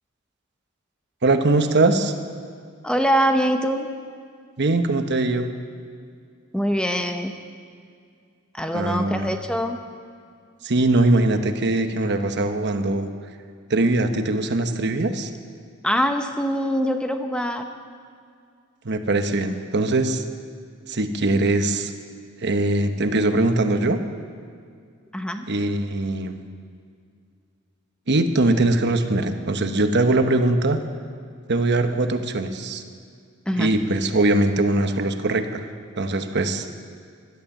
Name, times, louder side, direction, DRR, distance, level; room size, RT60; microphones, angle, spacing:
voice 1, 1.2-2.1 4.6-5.5 8.7-9.3 10.6-13.1 13.7-15.3 18.8-20.2 20.9-21.9 22.4-24.0 25.5-26.3 28.1-30.8 31.5-32.8 33.6-35.6 36.0-36.7, right 2 dB, 55° right, 7 dB, 1.0 m, -21 dB
voice 2, 2.8-3.9 6.5-7.3 8.5-9.8 15.8-17.7 25.1-25.4 33.5-33.7, equal, 5° left, 6 dB, 0.7 m, -23 dB
16.0 x 12.0 x 7.2 m, 2.2 s
head